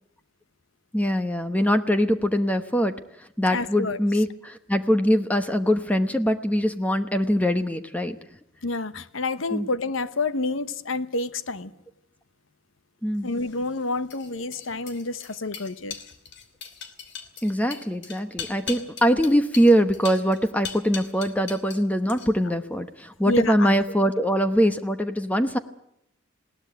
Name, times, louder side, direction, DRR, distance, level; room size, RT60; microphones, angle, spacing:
voice 1, 0.9-3.0 3.4-8.2 9.5-9.7 13.0-13.3 17.4-25.6, equal, 10° left, 9 dB, 1.0 m, -22 dB
voice 2, 3.5-4.0 8.6-11.7 13.2-16.0 23.3-23.7 24.2-24.3, left 3 dB, 85° left, 14 dB, 1.1 m, -29 dB
sound 1, 13.3-21.8 22.1-22.6, left 7 dB, 60° left, 2.8 m, -39 dB
20.5 x 18.0 x 8.0 m, 0.76 s
head